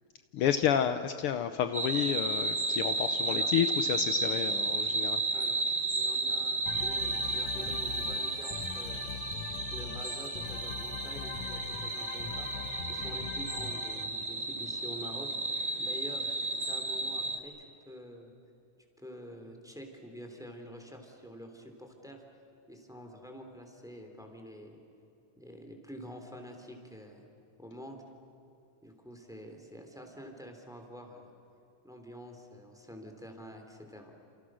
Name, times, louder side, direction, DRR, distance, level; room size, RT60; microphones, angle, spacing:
voice 1, 0.3-5.2, left 9 dB, 85° left, 9 dB, 1.2 m, -30 dB
sound 1, 1.7-17.4, right 2 dB, 20° right, 1.0 m, -33 dB
voice 2, 5.3-5.6 5.9-9.2 9.7-12.5 12.8-15.3 15.8-18.3 19.0-22.2 22.7-24.8 25.4-27.2 27.6-28.0 28.8-31.3 31.8-34.1, equal, ahead, 3 dB, 3.1 m, -47 dB
sound 2, 6.7-14.0, left 7 dB, 70° left, 2.3 m, -42 dB
29.5 x 28.5 x 6.4 m, 2.9 s
omnidirectional pair, 3.6 m